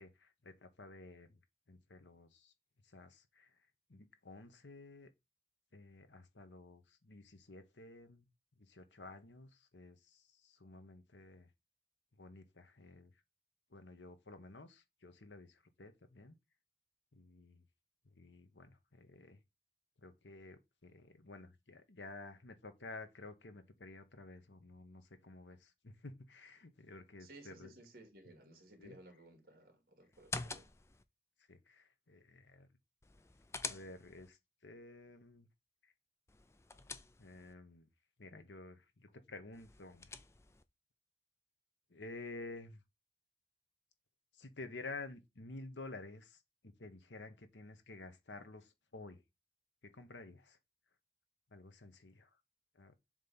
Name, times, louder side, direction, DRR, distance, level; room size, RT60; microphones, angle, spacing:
voice 1, 0.0-1.4 1.7-2.5 2.8-3.6 3.9-5.1 5.7-8.3 8.6-11.5 12.2-13.1 13.7-16.4 17.1-17.6 18.1-19.4 20.0-27.7 28.8-29.0 31.5-32.7 33.7-35.5 35.8-35.9 37.2-37.9 38.2-40.2 41.9-42.8 44.3-49.2 49.8-50.6 51.5-52.3 52.7-52.9, left 3 dB, 85° left, 1.3 m, -52 dB
voice 2, 27.2-30.7, right 1 dB, 55° right, 2.2 m, -58 dB
sound 1, 30.1-31.0 33.0-34.3 36.3-37.5 39.5-40.6, left 3 dB, 15° left, 0.4 m, -46 dB
7.4 x 3.3 x 5.6 m
head